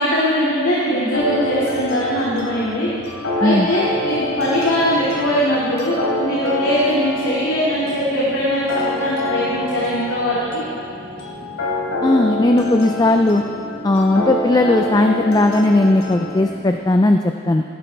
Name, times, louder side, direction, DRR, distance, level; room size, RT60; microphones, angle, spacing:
voice 1, 0.0-2.9 3.4-10.6, equal, 75° left, -8 dB, 2.3 m, -20 dB
sound 1, 1.1-16.4, left 1 dB, 90° left, 3.1 m, -27 dB
sound 2, 1.1-16.8, equal, 45° left, 2.5 m, -40 dB
voice 2, 12.0-13.4 13.8-17.6, left 2 dB, 20° left, 5 dB, 0.3 m, -16 dB
19.0 x 11.0 x 3.4 m, 2.3 s
head